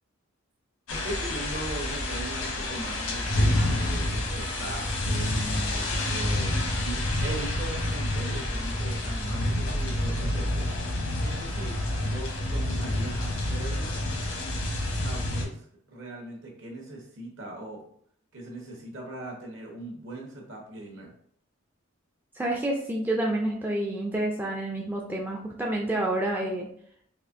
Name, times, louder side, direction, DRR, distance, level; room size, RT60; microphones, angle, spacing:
sound 1, 0.9-15.4, left 1 dB, 90° left, 0.9 m, -28 dB
voice 1, 0.9-10.7 11.2-14.0 14.3-14.6 14.9-17.8 18.3-21.1, right 2 dB, 60° right, 0 dB, 1.1 m, -40 dB
voice 2, 22.3-26.7, right 1 dB, 10° right, -2 dB, 0.3 m, -28 dB
4.2 x 2.6 x 2.6 m, 0.65 s
head